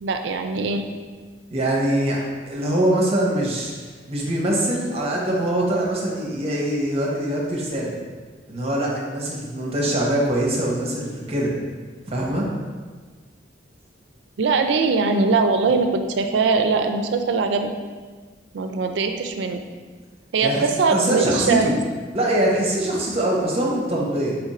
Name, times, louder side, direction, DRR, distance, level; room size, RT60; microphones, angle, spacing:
voice 1, 0.0-0.8 14.4-17.7 18.5-19.6 20.3-21.7, right 4 dB, 70° right, 6 dB, 0.4 m, -21 dB
voice 2, 1.5-7.9 8.5-11.5 12.1-12.5 20.4-20.6 20.9-21.7 22.1-24.4, right 1 dB, 35° right, -3 dB, 0.8 m, -23 dB
4.4 x 2.5 x 4.1 m, 1.4 s
head